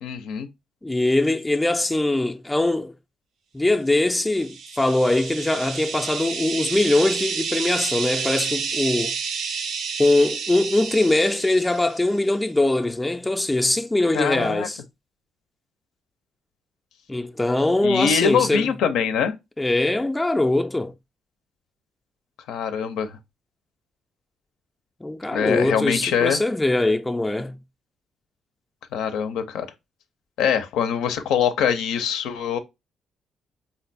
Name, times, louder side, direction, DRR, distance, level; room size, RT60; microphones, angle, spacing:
voice 1, 0.0-0.5 14.1-14.7 17.8-19.3 22.5-23.2 25.3-26.4 28.9-29.7 30.4-32.6, left 7 dB, 90° left, 0.4 m, -23 dB
voice 2, 0.8-2.9 3.5-9.1 10.0-14.8 17.1-18.7 19.6-20.9 25.0-27.6, left 2 dB, 10° left, 0.3 m, -22 dB
sound 1, 4.2-12.0, right 5 dB, 75° right, 0.5 m, -30 dB
3.7 x 2.2 x 2.5 m
cardioid pair, 90°, 0 cm